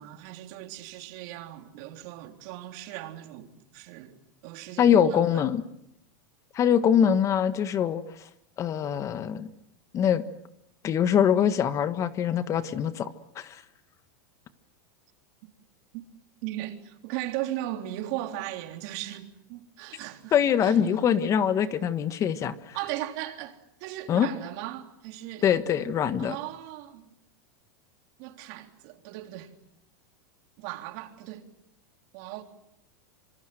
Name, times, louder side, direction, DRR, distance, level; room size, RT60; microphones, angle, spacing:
voice 1, 0.0-4.1 4.4-5.4 15.9-16.0 16.4-20.3 20.6-21.1 22.7-25.4 26.2-27.1 28.2-29.5 30.6-31.5 32.1-32.4, right 14 dB, 55° right, 3.6 m, -37 dB
voice 2, 4.8-5.6 6.5-8.0 8.6-9.5 9.9-10.2 10.8-13.1 13.3-13.6 20.3-22.8 24.1-24.3 25.4-26.3, left 8 dB, 30° left, 1.5 m, -23 dB
26.5 x 26.5 x 7.8 m
supercardioid pair, 130°, 10 cm